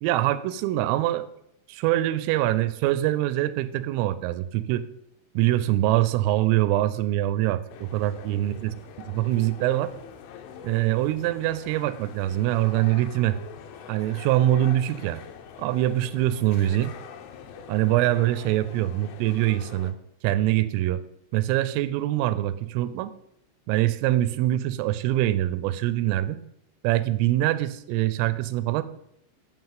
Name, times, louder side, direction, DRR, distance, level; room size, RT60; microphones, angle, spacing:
voice 1, 0.0-1.3 1.7-4.8 5.3-8.7 9.1-9.9 10.6-13.4 13.9-15.2 15.6-16.9 17.7-20.0 20.2-21.0 21.3-23.1 23.7-26.4 26.8-28.8, right 14 dB, 85° right, 15 dB, 3.3 m, -24 dB
sound 1, 7.7-19.9, left 7 dB, 80° left, 3.3 m, -44 dB
7.9 x 7.6 x 7.5 m, 0.77 s
omnidirectional pair, 5.8 m